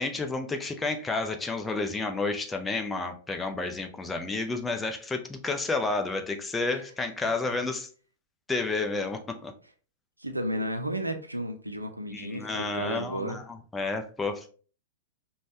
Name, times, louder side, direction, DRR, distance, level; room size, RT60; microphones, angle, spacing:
voice 1, 0.0-7.9 8.5-9.5 12.1-14.5, left 3 dB, 10° left, 0.5 m, -31 dB
voice 2, 10.2-13.4, right 1 dB, 85° right, 0.5 m, -33 dB
5.2 x 2.3 x 2.8 m
figure-of-eight pair, 100°, 0 cm